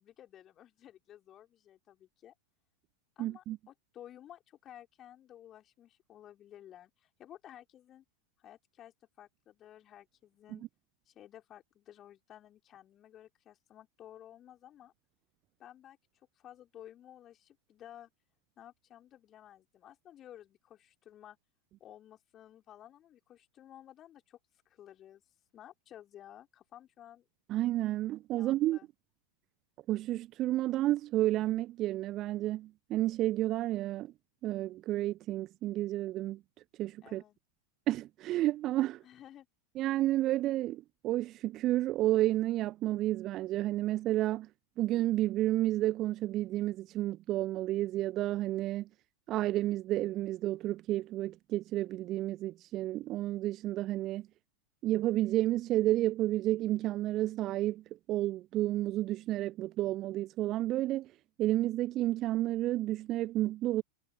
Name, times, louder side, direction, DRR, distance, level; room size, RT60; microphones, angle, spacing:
voice 1, 0.0-2.3 3.2-8.0 8.4-10.7 11.1-14.9 15.6-18.1 18.6-21.4 21.8-24.4 24.7-25.2 25.5-27.3 28.3-28.9 37.0-37.4 39.0-39.5, left 11 dB, 30° left, 4.0 m, -54 dB
voice 2, 3.2-3.6 10.5-10.6 27.5-28.8 29.9-34.1 34.4-36.4 36.8-37.2 37.9-39.0 39.8-44.5 44.8-48.9 49.3-54.3 54.8-61.1 61.4-63.8, right 15 dB, 35° right, 0.5 m, -31 dB
figure-of-eight pair, 90°, 0 cm